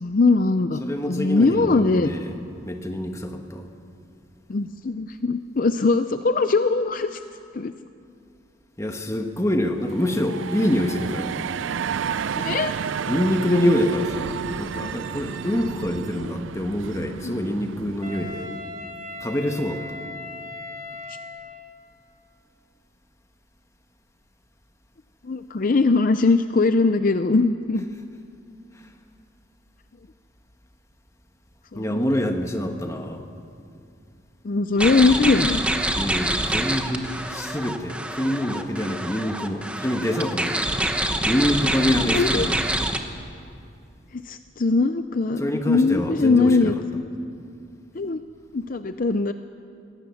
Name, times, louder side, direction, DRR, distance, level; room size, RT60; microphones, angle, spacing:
voice 1, 0.0-0.8 1.1-2.1 4.5-7.2 7.5-7.7 12.3-12.7 17.2-17.3 21.1-21.2 25.2-27.9 31.7-32.1 34.4-35.6 42.1-42.5 44.1-47.1 47.9-48.2 48.5-49.3, left 3 dB, 45° left, 10 dB, 0.5 m, -21 dB
voice 2, 0.8-2.4 2.6-3.7 8.8-11.4 13.1-18.5 19.2-19.8 31.7-33.2 36.0-40.7 41.2-42.6 45.4-46.8, left 1 dB, 15° left, 4 dB, 1.4 m, -25 dB
sound 1, 9.8-18.5, right 7 dB, 80° right, 0.4 m, -31 dB
Wind instrument woodwind instrument, 18.0-21.8, left 2 dB, 35° right, 2.3 m, -38 dB
sound 2, 34.8-43.0, right 1 dB, 5° right, 1.0 m, -26 dB
23.0 x 17.5 x 7.1 m, 2.5 s
head